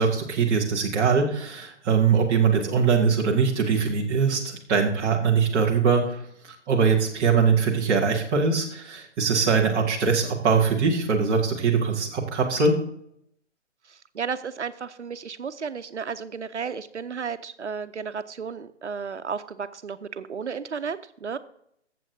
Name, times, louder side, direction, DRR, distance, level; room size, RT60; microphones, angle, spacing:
voice 1, 0.0-6.2 6.7-12.7, right 5 dB, 5° right, -5 dB, 0.5 m, -22 dB
voice 2, 13.9-21.4, right 6 dB, 75° right, 12 dB, 0.7 m, -33 dB
19.5 x 7.6 x 2.7 m, 0.72 s
figure-of-eight pair, 135°, 35 cm